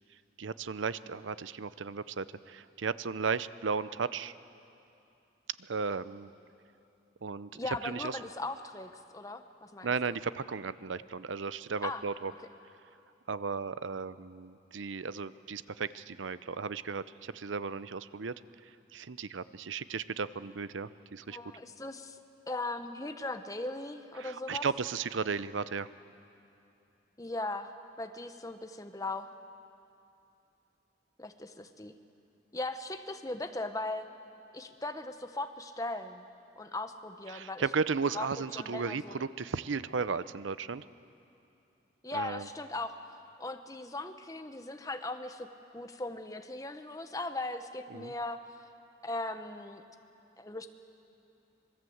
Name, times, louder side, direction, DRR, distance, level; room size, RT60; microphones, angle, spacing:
voice 1, 0.4-4.3 5.6-6.3 7.2-8.2 9.8-12.3 13.3-18.4 18.9-21.4 24.2-25.9 37.3-40.8 42.1-42.5 47.9-48.1, right 5 dB, 85° right, 15 dB, 0.7 m, -35 dB
voice 2, 7.5-10.2 11.8-12.0 21.3-22.2 22.5-24.7 27.2-29.3 31.2-31.9 32.5-34.1 34.5-36.3 36.6-37.6 38.1-38.3 38.5-39.3 42.0-43.0 43.4-45.5 45.7-48.4 49.0-49.8 50.4-50.7, left 2 dB, 20° left, 7 dB, 1.0 m, -38 dB
26.0 x 20.5 x 7.9 m, 2.7 s
head